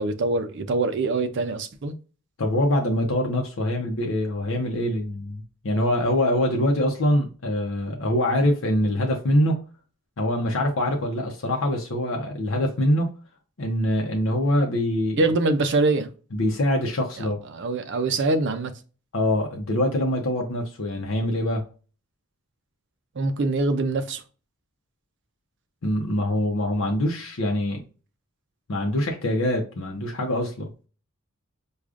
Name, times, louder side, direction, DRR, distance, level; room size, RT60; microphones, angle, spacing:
voice 1, 0.0-1.9 15.2-16.1 17.2-18.8 23.1-24.2, right 2 dB, 55° right, 0.5 m, -24 dB
voice 2, 2.4-9.6 10.2-13.1 13.6-15.2 16.3-17.4 19.1-21.6 25.8-27.8 28.7-30.7, left 1 dB, 65° left, 0.7 m, -24 dB
4.8 x 2.4 x 2.4 m
head